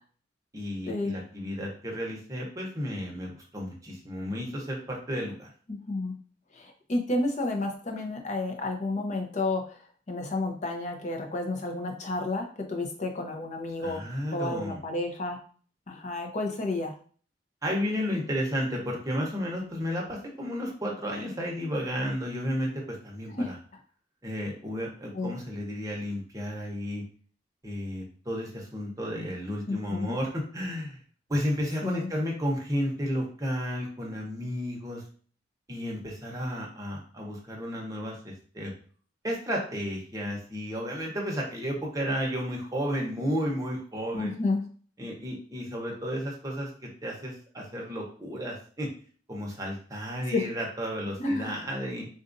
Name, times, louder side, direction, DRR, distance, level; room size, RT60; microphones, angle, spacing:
voice 1, 0.5-5.5 13.8-14.8 17.6-23.6 24.2-27.0 27.6-31.0 31.3-35.0 35.7-38.7 39.2-44.3 45.0-48.9 49.3-52.1, equal, 20° right, -2 dB, 0.8 m, -32 dB
voice 2, 5.7-6.1 6.5-9.8 10.1-14.0 14.3-15.4 15.9-16.9 23.4-23.5 25.1-25.3 29.7-30.1 31.8-32.1 44.1-44.6 50.3-50.5 51.2-51.6, left 2 dB, 40° left, 3 dB, 0.6 m, -31 dB
3.9 x 2.4 x 2.5 m, 0.43 s
head